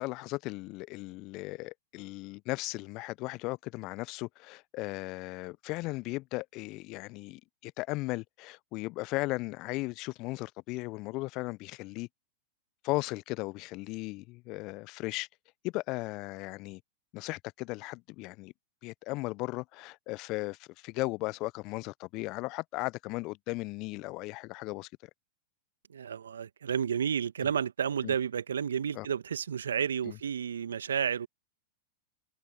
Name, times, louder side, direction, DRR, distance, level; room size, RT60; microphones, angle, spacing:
voice 1, 0.0-12.1 12.8-15.3 15.6-16.8 17.1-18.5 18.8-25.1 28.0-28.1 28.9-29.1 30.0-30.2, left 22 dB, 45° left, 0.6 m, -36 dB
voice 2, 25.9-31.3, right 8 dB, 75° right, 1.4 m, -31 dB
open air
figure-of-eight pair, 95°, 0 cm